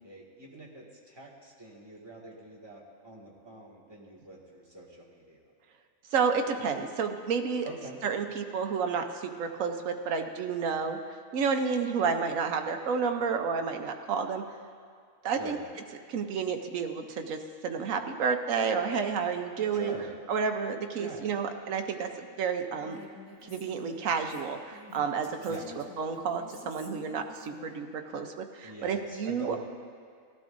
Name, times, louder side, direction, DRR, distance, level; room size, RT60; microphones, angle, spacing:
voice 1, 0.0-5.4 7.6-8.0 15.4-15.6 19.7-20.1 21.0-21.2 25.5-25.7 28.6-29.6, right 2 dB, 20° right, -5 dB, 1.9 m, -45 dB
voice 2, 6.1-7.7 8.0-11.0 11.3-14.4 15.2-15.6 16.1-17.4 17.6-19.9 20.3-23.0 23.5-29.6, right 5 dB, 75° right, 5 dB, 1.2 m, -30 dB
Female speech woman speaking, 22.8-27.9, left 4 dB, 60° left, 1.9 m, -50 dB
18.0 x 12.0 x 2.6 m, 2.2 s
omnidirectional pair, 1.4 m